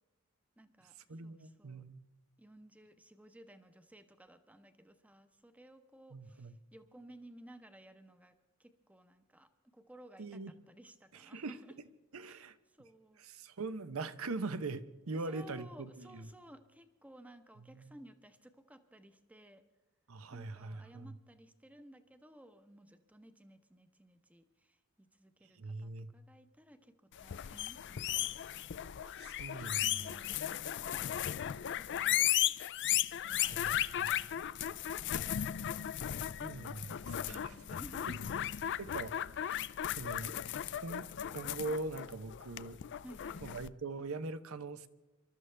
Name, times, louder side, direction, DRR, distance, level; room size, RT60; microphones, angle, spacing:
voice 1, 0.6-1.8 2.4-8.3 8.6-11.7 12.2-13.2 15.2-19.6 20.3-28.4 29.8-32.6 33.2-33.6 34.0-36.0 37.2-38.5 39.5-39.6 43.0-43.4, right 1 dB, 5° right, 0.9 m, -57 dB
voice 2, 1.1-2.0 6.1-6.5 10.2-10.5 11.1-11.6 12.1-12.6 13.2-16.3 17.7-17.9 20.1-21.2 25.6-26.1 29.0-30.2 33.3-34.3 36.4-37.5 38.8-39.5 40.0-40.3 40.7-42.8 43.4-44.9, right 3 dB, 70° right, 0.8 m, -42 dB
sound 1, 27.2-43.7, left 11 dB, 55° left, 0.4 m, -36 dB
26.5 x 12.5 x 3.4 m
head